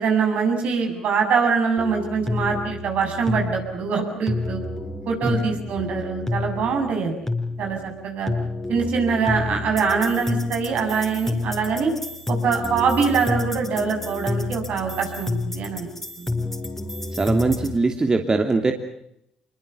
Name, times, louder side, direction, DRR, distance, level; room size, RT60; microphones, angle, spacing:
voice 1, 0.0-4.6 5.1-7.1 7.6-8.3 8.7-11.9 12.3-15.9 16.2-16.3, right 5 dB, 65° right, 3 dB, 7.2 m, -23 dB
sound 1, 1.8-17.8, left 2 dB, 10° left, 4.7 m, -29 dB
voice 2, 17.2-18.7, right 3 dB, 30° right, 4 dB, 2.9 m, -21 dB
26.0 x 22.5 x 6.9 m, 0.77 s
hypercardioid pair, 55°, 3 cm